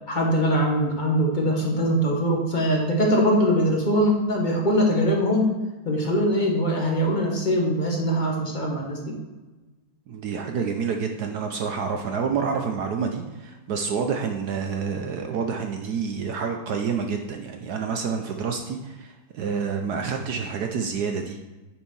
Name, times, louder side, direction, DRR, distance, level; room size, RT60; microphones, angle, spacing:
voice 1, 0.1-5.5 5.8-9.2, equal, 25° left, -1 dB, 1.2 m, -22 dB
voice 2, 10.1-21.4, right 6 dB, 70° right, 4 dB, 1.0 m, -28 dB
9.1 x 4.3 x 5.4 m, 1.2 s
omnidirectional pair, 2.2 m